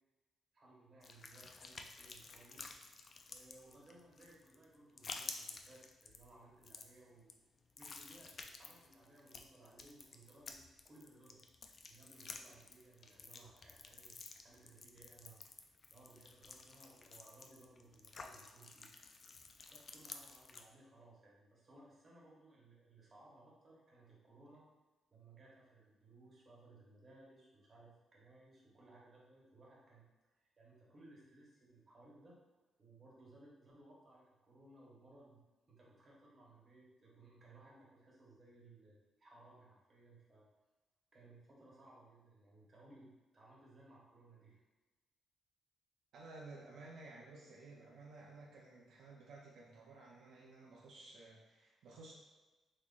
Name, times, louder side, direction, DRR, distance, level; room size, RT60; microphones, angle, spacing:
voice 1, 0.5-2.7 3.3-7.4 7.8-11.4 11.9-15.4 15.9-18.9 19.7-24.6 25.1-30.0 30.4-32.4 32.8-35.4 35.7-40.5 41.1-44.6, right 2 dB, 40° right, -5 dB, 1.1 m, -62 dB
sound 1, 1.0-20.6, left 4 dB, 45° left, 0.3 m, -52 dB
voice 2, 46.1-52.1, right 3 dB, 80° right, -3 dB, 0.5 m, -55 dB
3.7 x 3.0 x 2.4 m, 1.2 s
cardioid pair, 110°, 0 cm